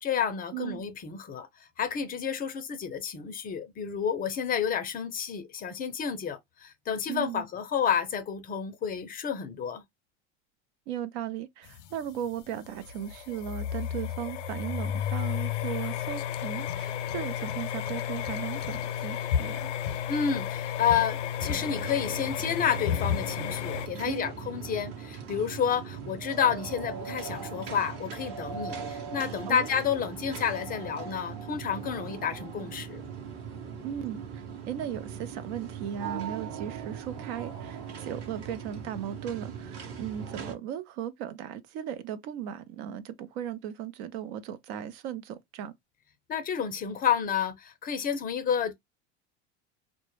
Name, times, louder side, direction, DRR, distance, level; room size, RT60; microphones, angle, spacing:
voice 1, 0.0-1.5 1.8-9.8 20.1-33.0 46.3-48.7, left 7 dB, 25° left, 0.4 m, -30 dB
voice 2, 0.5-0.8 7.1-7.4 10.9-19.7 24.0-24.4 29.5-29.7 33.8-45.7, right 10 dB, 65° right, 0.5 m, -37 dB
sound 1, 11.7-23.9, left 9 dB, 90° left, 0.5 m, -32 dB
sound 2, 21.4-40.5, right 7 dB, 45° right, 0.9 m, -40 dB
2.1 x 2.1 x 3.0 m
supercardioid pair, 110°, 34 cm